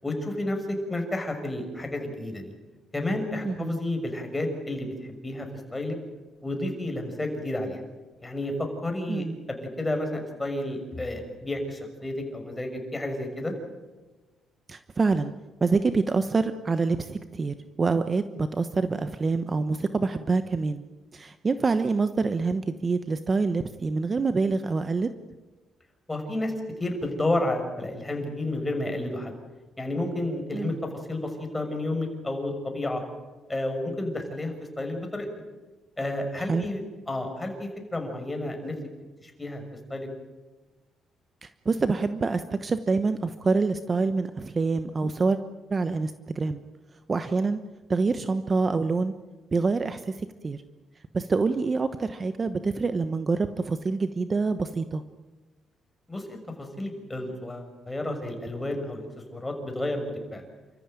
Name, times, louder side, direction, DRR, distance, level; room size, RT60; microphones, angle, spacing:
voice 1, 0.0-2.5 2.9-5.5 5.7-6.0 6.4-7.8 8.2-13.5 26.1-26.5 26.8-29.3 29.8-33.0 33.5-35.3 36.0-36.8 37.1-38.7 39.2-39.6 39.9-40.1 56.1-59.0 59.3-60.4, left 1 dB, 15° left, 4 dB, 6.2 m, -31 dB
voice 2, 3.4-3.8 9.1-9.3 14.7-15.3 15.6-20.8 21.1-25.1 30.5-30.8 36.4-36.7 41.4-45.4 45.7-46.6 47.1-47.6 47.9-49.1 49.5-50.6 51.1-55.0, right 4 dB, 35° right, 10 dB, 1.0 m, -26 dB
29.0 x 14.5 x 9.1 m, 1.2 s
cardioid pair, 90°, 0 cm